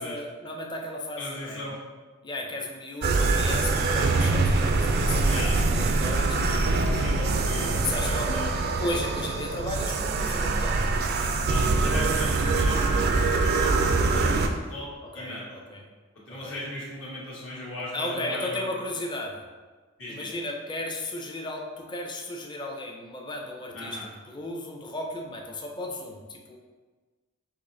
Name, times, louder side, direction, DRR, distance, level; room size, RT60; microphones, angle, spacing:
voice 1, 0.0-1.6 2.2-6.4 7.7-8.5 8.8-11.0 15.1-15.4 15.7-15.8 16.3-16.6 17.9-19.4 20.1-26.6, left 1 dB, 20° left, 1 dB, 0.5 m, -35 dB
voice 2, 1.2-1.8 5.3-5.6 6.4-8.5 11.0-15.6 16.3-18.7 20.0-20.4 23.7-24.1, left 1 dB, 70° left, -6 dB, 1.4 m, -38 dB
sound 1, 3.0-14.5, right 3 dB, 50° right, 0.4 m, -24 dB
5.8 x 3.2 x 2.6 m, 1.4 s
head